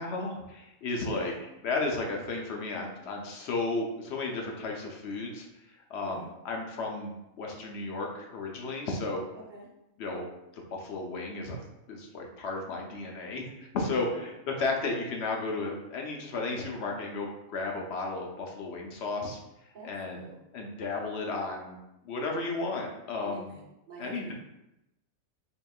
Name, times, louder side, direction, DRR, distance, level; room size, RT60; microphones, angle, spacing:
voice 1, 0.0-1.3 1.6-5.5 5.9-9.2 10.0-11.6 11.9-19.4 19.8-20.2 20.5-21.8 22.0-23.5 24.0-24.3, left 3 dB, 60° left, 1 dB, 0.8 m, -34 dB
voice 2, 1.1-1.4 6.0-6.3 9.3-9.7 14.0-14.3 19.7-20.4 23.2-24.3, right 3 dB, 50° right, -2 dB, 0.6 m, -47 dB
4.5 x 2.9 x 2.3 m, 0.90 s
omnidirectional pair, 1.4 m